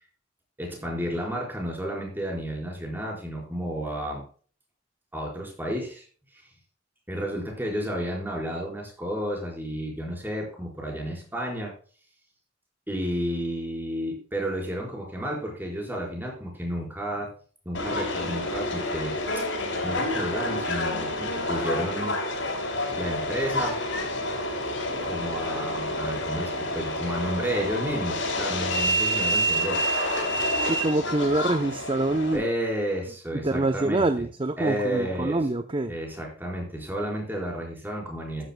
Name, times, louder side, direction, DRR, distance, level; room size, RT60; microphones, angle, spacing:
voice 1, 0.6-4.2 5.1-6.1 6.3-6.5 7.1-11.7 12.9-17.3 17.6-19.2 19.8-22.2 23.0-23.8 25.0-29.8 32.3-34.0 34.6-35.4 35.9-38.5, equal, 10° right, -1 dB, 4.5 m, -31 dB
Subway metro underground, 17.7-32.4, equal, 75° left, 5.2 m, -28 dB
voice 2, 30.6-32.4 33.4-35.9, right 2 dB, 25° right, 9 dB, 0.6 m, -25 dB
13.5 x 10.5 x 2.2 m, 0.41 s
head